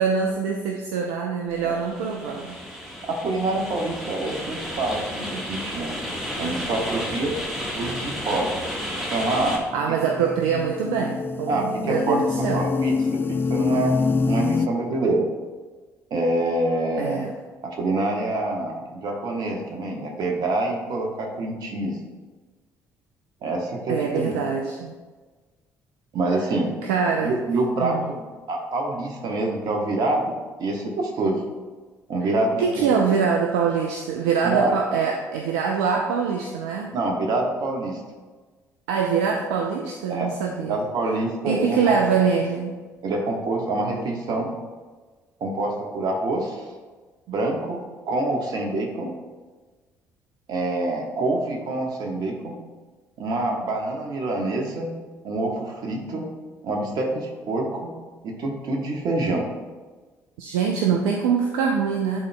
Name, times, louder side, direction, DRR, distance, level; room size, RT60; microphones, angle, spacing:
voice 1, 0.0-2.6 9.7-12.7 17.0-17.3 23.9-25.0 26.8-27.4 27.8-28.1 32.2-32.3 32.6-36.9 38.9-40.8 41.5-42.8 60.4-62.2, right 6 dB, 70° right, 2 dB, 0.5 m, -24 dB
sound 1, 1.5-9.6, equal, 5° right, 1.4 m, -32 dB
voice 2, 3.0-5.9 6.4-7.4 7.7-8.6 9.1-9.6 11.5-14.0 14.3-15.3 16.1-17.2 17.6-22.0 23.4-24.4 26.1-26.7 27.2-30.3 30.6-31.4 32.1-32.9 34.4-34.7 36.9-38.0 40.1-40.3 40.7-42.2 43.0-44.5 45.4-46.7 47.3-47.8 48.1-49.1 50.5-52.5 53.2-54.9 55.2-56.2 56.6-57.9 58.2-59.5, right 2 dB, 50° right, 1 dB, 1.2 m, -26 dB
sound 2, 9.6-14.7, left 4 dB, 25° left, 0.4 m, -25 dB
11.0 x 3.9 x 2.2 m, 1.3 s
figure-of-eight pair, 50°, 9 cm